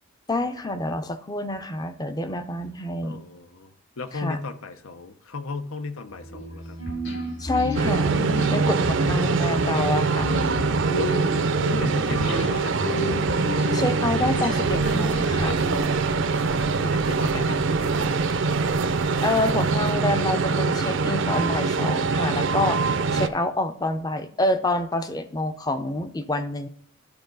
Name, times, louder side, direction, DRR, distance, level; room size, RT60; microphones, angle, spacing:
voice 1, 0.3-3.2 4.1-4.4 7.4-8.2 8.5-10.3 13.7-15.6 19.2-26.7, left 2 dB, 20° left, 9 dB, 0.5 m, -27 dB
voice 2, 3.0-6.8 9.3-9.5 11.3-13.0 16.8-18.4, left 4 dB, 85° left, 10 dB, 0.8 m, -36 dB
sound 1, 6.2-15.8, left 2 dB, 60° left, 3.0 m, -31 dB
sound 2, 7.8-23.3, right 4 dB, 65° right, 0.5 m, -23 dB
sound 3, 14.6-19.9, right 3 dB, 85° right, 0.9 m, -37 dB
11.5 x 4.6 x 3.9 m, 0.64 s
head